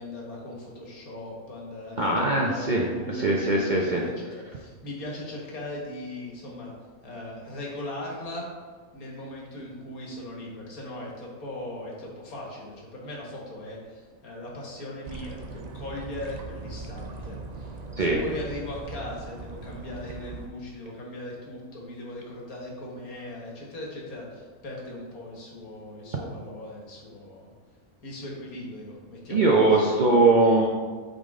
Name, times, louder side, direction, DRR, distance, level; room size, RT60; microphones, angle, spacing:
voice 1, 0.0-6.7 7.0-8.5 8.9-27.5 28.0-29.9, left 1 dB, 75° left, -3 dB, 2.0 m, -39 dB
voice 2, 2.0-4.0 18.0-18.2 29.3-30.7, right 2 dB, 45° right, -2 dB, 0.6 m, -21 dB
sound 1, 15.1-20.5, right 3 dB, 85° right, 0.3 m, -40 dB
8.5 x 4.0 x 3.7 m, 1.5 s
omnidirectional pair, 1.6 m